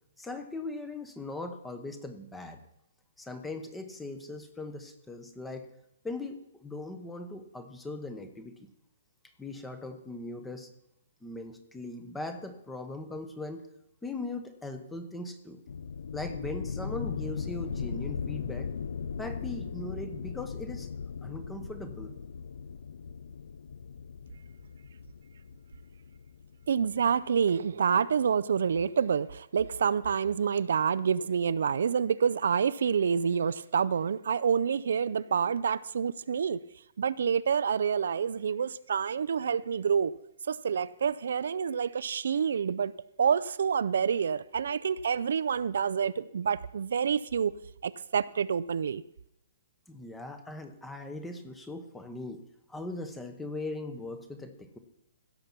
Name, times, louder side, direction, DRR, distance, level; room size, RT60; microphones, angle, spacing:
voice 1, 0.2-2.6 3.2-5.7 6.0-8.7 9.4-10.7 11.2-13.6 14.0-15.6 16.1-18.7 19.2-20.9 21.2-22.1 49.9-52.4 52.7-54.8, left 2 dB, 5° left, 0.8 m, -39 dB
sound 1, 15.7-27.1, left 6 dB, 70° left, 0.5 m, -38 dB
voice 2, 26.7-36.6 37.0-40.1 40.5-42.9 43.2-47.5 47.8-49.0, right 7 dB, 65° right, 0.4 m, -28 dB
16.0 x 6.9 x 5.9 m
hypercardioid pair, 175°, 0 cm